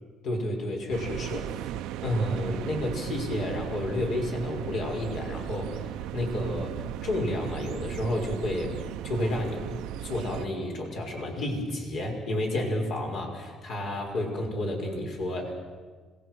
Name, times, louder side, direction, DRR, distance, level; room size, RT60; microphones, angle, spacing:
voice 1, 0.2-1.5 2.0-8.8 9.0-9.6 10.0-15.5, left 1 dB, 65° left, 1 dB, 5.9 m, -31 dB
sound 1, 0.9-10.5, right 12 dB, 90° right, 0.6 m, -36 dB
26.5 x 20.5 x 6.3 m, 1.4 s
cardioid pair, 105°, 0 cm